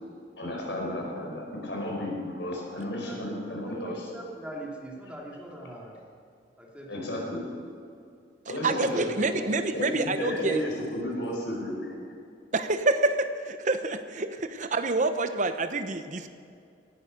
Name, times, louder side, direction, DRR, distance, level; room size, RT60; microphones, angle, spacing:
voice 1, 0.4-4.1 6.9-7.4 8.5-12.0, left 1 dB, 85° left, -1 dB, 4.6 m, -33 dB
voice 2, 3.6-6.0 6.6-7.1, right 1 dB, 5° right, -3 dB, 2.6 m, -42 dB
voice 3, 8.5-10.6 12.5-16.3, right 2 dB, 45° right, 9 dB, 0.9 m, -27 dB
18.5 x 11.0 x 5.3 m, 2.4 s
head